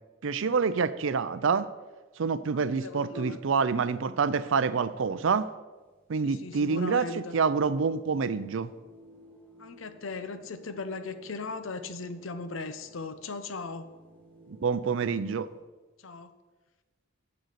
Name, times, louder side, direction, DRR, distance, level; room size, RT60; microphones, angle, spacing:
voice 1, 0.2-1.7 2.2-5.5 6.1-8.7 14.6-15.5, right 5 dB, 65° right, 14 dB, 0.5 m, -27 dB
voice 2, 2.8-3.4 6.2-7.3 9.6-13.9 16.0-16.3, left 3 dB, 70° left, 10 dB, 0.7 m, -38 dB
sound 1, 5.7-15.6, equal, 5° left, 1.7 m, -55 dB
7.7 x 6.5 x 6.7 m, 1.2 s
head